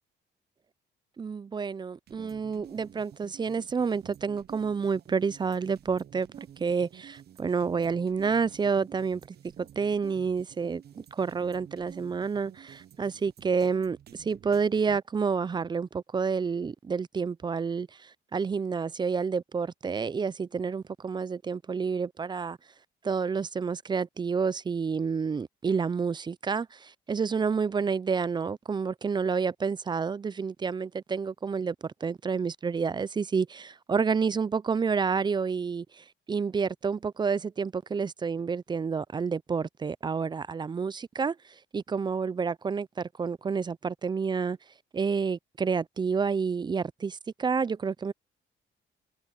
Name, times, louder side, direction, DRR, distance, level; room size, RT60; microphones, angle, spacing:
voice 1, 1.2-6.3 6.6-22.6 23.0-41.4 41.7-44.6 44.9-48.1, right 5 dB, 25° right, 0.4 m, -29 dB
sound 1, 2.1-15.0, right 10 dB, 55° right, 0.7 m, -51 dB
cardioid pair, 90°, 20 cm